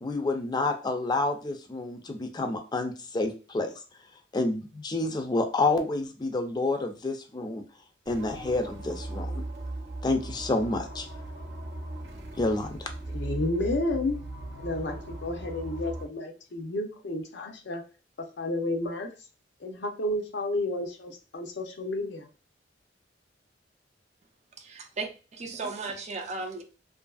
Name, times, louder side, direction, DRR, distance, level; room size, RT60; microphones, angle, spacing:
voice 1, 0.0-3.7 4.3-7.6 8.1-9.4 10.0-11.1 12.4-12.9, left 2 dB, 25° left, 5 dB, 0.4 m, -29 dB
sound 1, 8.1-16.1, right 2 dB, 80° right, 0.6 m, -38 dB
voice 2, 13.1-14.2 14.6-17.8 18.4-19.1 19.6-22.3, left 2 dB, 70° left, 3 dB, 0.6 m, -31 dB
voice 3, 24.6-26.6, right 3 dB, 40° right, 4 dB, 0.4 m, -36 dB
2.7 x 2.5 x 2.3 m, 0.33 s
head